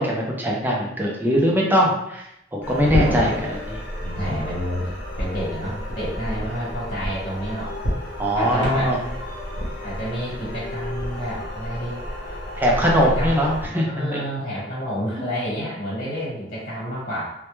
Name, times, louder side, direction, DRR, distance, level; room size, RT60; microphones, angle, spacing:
voice 1, 0.0-2.2 2.5-3.3 3.7-3.8 8.2-9.0 12.6-14.2, equal, 10° right, -3 dB, 0.5 m, -21 dB
sound 1, 2.6-13.7, equal, 65° left, 0.8 m, -30 dB
voice 2, 2.9-3.3 4.0-7.7 8.3-9.0 9.8-12.0 12.9-13.4 13.9-17.3, equal, 50° left, -10 dB, 1.2 m, -29 dB
2.2 x 2.1 x 3.0 m, 0.82 s
head